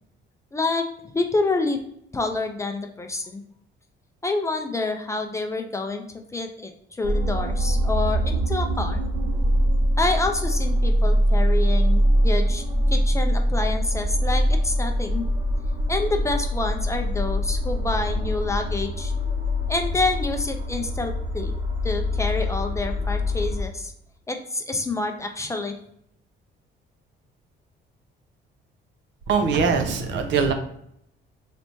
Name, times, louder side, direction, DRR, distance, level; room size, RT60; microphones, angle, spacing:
voice 1, 0.5-1.8 2.1-3.4 4.2-6.0 6.3-9.0 10.0-15.2 15.9-19.1 19.7-21.5 21.8-23.9 24.3-25.7, left 3 dB, 15° left, 4 dB, 0.3 m, -27 dB
sound 1, 7.0-23.6, equal, 35° right, 1.0 m, -23 dB
voice 2, 29.3-30.5, right 5 dB, 70° right, 6 dB, 0.7 m, -22 dB
3.3 x 2.7 x 4.4 m, 0.72 s
cardioid pair, 160°, 19 cm